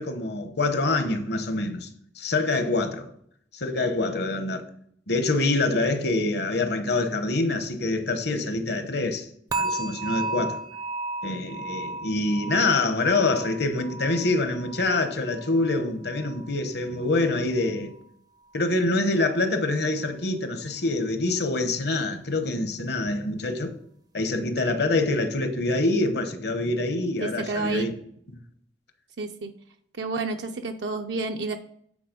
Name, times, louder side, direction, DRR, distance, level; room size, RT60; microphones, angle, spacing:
voice 1, 0.0-1.9 2.2-3.1 3.5-4.7 5.1-9.3 9.5-10.6 11.2-17.9 18.5-23.7 24.1-27.9, left 2 dB, 65° left, 1.0 m, -25 dB
sound 1, 9.5-16.6 16.9-17.3 17.8-17.9, right 2 dB, 20° right, 0.5 m, -34 dB
voice 2, 27.2-27.9 29.2-29.5 29.9-31.6, right 3 dB, 70° right, 0.6 m, -30 dB
8.7 x 4.2 x 5.2 m
head